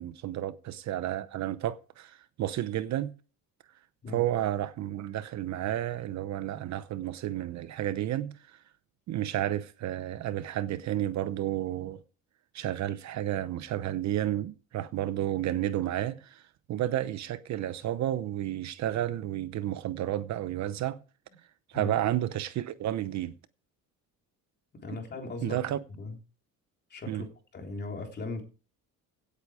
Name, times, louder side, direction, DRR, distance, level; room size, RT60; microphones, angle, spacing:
voice 1, 0.0-3.1 4.1-8.6 9.1-12.0 12.5-16.4 16.7-21.0 21.7-23.3 25.4-25.8 27.1-27.2, right 12 dB, 50° right, 0.8 m, -31 dB
voice 2, 24.8-25.6 26.0-26.2 26.9-27.3 27.5-28.4, left 3 dB, 30° left, 3.4 m, -38 dB
17.0 x 8.4 x 4.9 m
cardioid pair, 165°, 35 cm